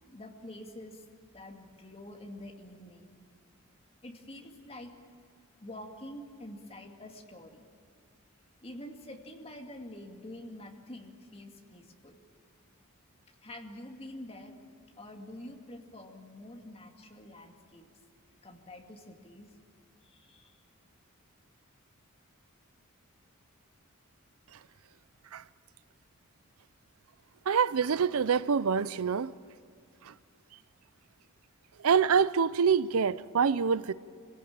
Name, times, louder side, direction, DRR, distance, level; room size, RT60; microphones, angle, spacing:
voice 1, 0.1-1.0 1.3-3.1 4.0-4.9 5.6-7.7 8.6-12.2 13.4-14.5 15.0-17.9 18.4-19.5 20.0-20.6, left 1 dB, 25° left, 2.3 m, -47 dB
voice 2, 27.5-29.3 31.8-33.9, right 6 dB, 80° right, 0.5 m, -25 dB
25.5 x 17.0 x 8.8 m
head